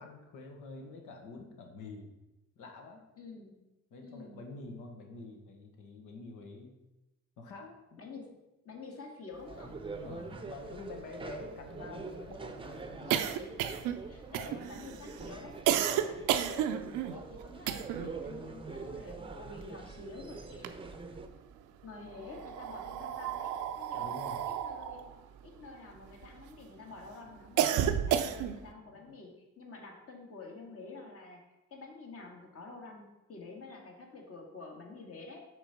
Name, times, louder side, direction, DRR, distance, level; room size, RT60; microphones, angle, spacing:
voice 1, 0.0-2.1 2.6-3.0 3.9-6.7 7.4-8.0 10.0-13.1 15.9-16.2 23.9-24.4 28.9-29.1, left 3 dB, 90° left, 2 dB, 1.3 m, -47 dB
voice 2, 3.1-3.7 4.0-4.4 8.0-8.3 8.6-9.8 13.0-13.7 14.1-16.7 17.1-21.2 21.8-24.1 24.5-25.1 25.4-31.4 31.7-35.4, left 3 dB, 50° left, 1 dB, 1.7 m, -49 dB
sound 1, 9.5-21.3, right 4 dB, 15° right, 0.6 m, -44 dB
sound 2, 10.0-10.1 10.3-10.4 10.7-18.2 18.5-20.0 20.4-21.3 22.1-26.6 27.0-28.7, right 10 dB, 85° right, 0.5 m, -33 dB
5.9 x 3.6 x 5.7 m, 0.99 s
cardioid pair, 90°, 30 cm